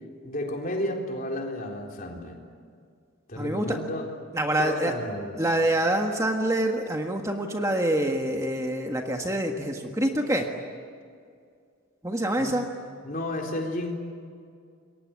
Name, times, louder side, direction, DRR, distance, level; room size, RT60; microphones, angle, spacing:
voice 1, 0.2-2.4 3.3-4.1 4.6-5.5 12.4-12.7 13.0-14.0, left 1 dB, 40° left, 1 dB, 3.9 m, -32 dB
voice 2, 3.4-3.8 4.3-4.9 5.4-10.5 12.0-12.7, right 1 dB, 15° right, 3 dB, 1.6 m, -26 dB
28.0 x 23.0 x 8.9 m, 2.2 s
head